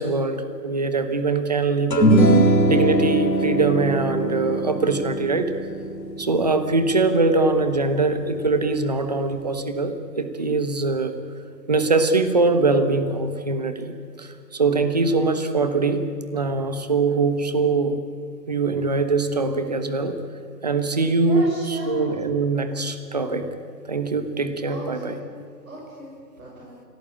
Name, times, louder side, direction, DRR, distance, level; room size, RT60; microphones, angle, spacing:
voice 1, 0.0-5.5 6.2-11.2 11.7-16.0 16.3-18.0 18.5-20.2 20.6-21.4 21.9-23.5 23.8-25.1, right 3 dB, 25° right, 9 dB, 1.2 m, -22 dB
sound 1, 1.9-8.4, right 1 dB, 85° left, 3.5 m, -22 dB
voice 2, 21.2-22.1 24.7-25.2 25.6-26.8, right 1 dB, 55° right, -2 dB, 6.2 m, -36 dB
28.5 x 17.5 x 8.8 m, 2.4 s
hypercardioid pair, 175°, 49 cm